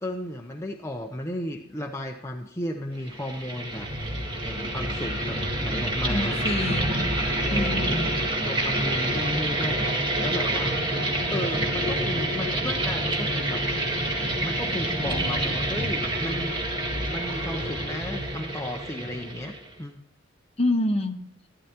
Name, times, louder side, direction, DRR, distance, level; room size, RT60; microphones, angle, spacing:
voice 1, 0.0-6.5 7.5-8.0 8.4-10.9 11.3-13.6 14.3-16.6 17.0-20.0, left 1 dB, 15° left, 2 dB, 0.7 m, -34 dB
sound 1, 3.0-19.7, right 1 dB, 25° right, 2.1 m, -27 dB
voice 2, 6.1-7.1 7.5-8.1 20.6-21.2, left 1 dB, 30° left, 4 dB, 1.1 m, -27 dB
13.5 x 12.5 x 2.9 m, 0.79 s
head